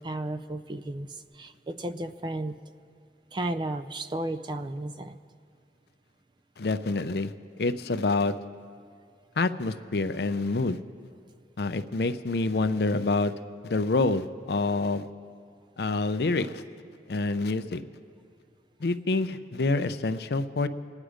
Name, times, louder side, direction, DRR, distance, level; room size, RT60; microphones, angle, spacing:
voice 1, 0.0-2.6 3.3-5.2, right 1 dB, 25° right, 11 dB, 0.4 m, -34 dB
voice 2, 6.6-7.3 7.6-8.3 9.4-10.8 11.6-13.3 13.6-15.1 15.8-16.6 17.1-17.8 18.8-20.7, left 3 dB, 65° left, 11 dB, 0.5 m, -27 dB
25.5 x 9.7 x 5.0 m, 2.3 s
head